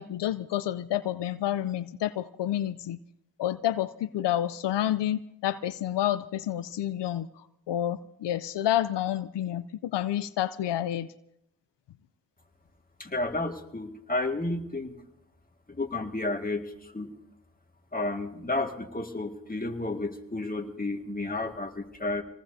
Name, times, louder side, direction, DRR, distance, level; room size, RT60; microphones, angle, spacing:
voice 1, 0.0-3.0 3.4-7.3 7.7-11.1, left 12 dB, 90° left, 14 dB, 0.5 m, -29 dB
voice 2, 13.0-15.0 15.7-17.1 17.9-22.2, left 2 dB, 20° left, 4 dB, 1.9 m, -32 dB
26.5 x 19.0 x 2.7 m, 0.77 s
cardioid pair, 50°, 40 cm